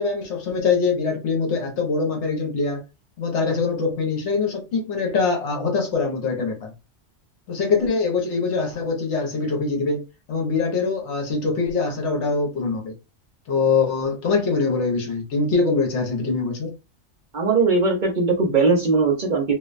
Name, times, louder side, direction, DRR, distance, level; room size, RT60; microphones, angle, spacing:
voice 1, 0.0-2.8 3.2-6.7 7.5-10.0 10.3-12.9 13.5-16.7, left 4 dB, 75° left, 1.1 m, -23 dB
voice 2, 17.3-19.5, right 4 dB, 50° right, 0.7 m, -19 dB
2.5 x 2.1 x 2.4 m
omnidirectional pair, 1.2 m